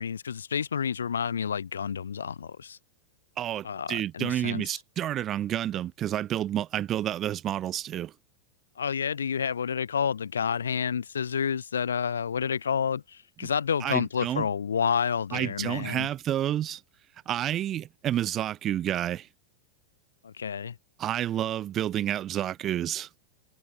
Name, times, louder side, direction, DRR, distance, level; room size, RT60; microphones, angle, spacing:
voice 1, 0.0-2.8 3.6-4.6 8.8-16.1 20.2-20.8, left 7 dB, 70° left, 1.2 m, -29 dB
voice 2, 3.4-8.1 13.8-14.5 15.3-16.8 17.3-19.3 21.0-23.1, right 11 dB, 30° right, 0.3 m, -29 dB
figure-of-eight pair, 90°, 0 cm